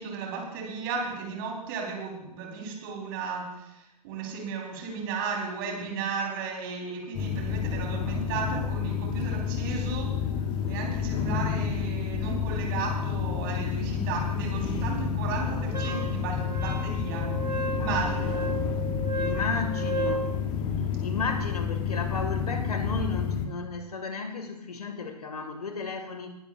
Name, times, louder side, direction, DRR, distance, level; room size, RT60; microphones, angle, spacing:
voice 1, 0.0-10.2 10.6-17.3 17.7-18.4 19.4-19.5, right 5 dB, 35° right, 0 dB, 4.0 m, -34 dB
sound 1, 7.1-23.5, left 7 dB, 20° left, 1.1 m, -30 dB
Wind instrument woodwind instrument, 15.7-20.3, right 2 dB, 75° right, 1.5 m, -34 dB
voice 2, 17.8-18.7 19.1-20.3 21.0-26.3, left 4 dB, 65° left, 7 dB, 1.9 m, -34 dB
20.5 x 11.5 x 2.5 m, 0.89 s
figure-of-eight pair, 125°, 21 cm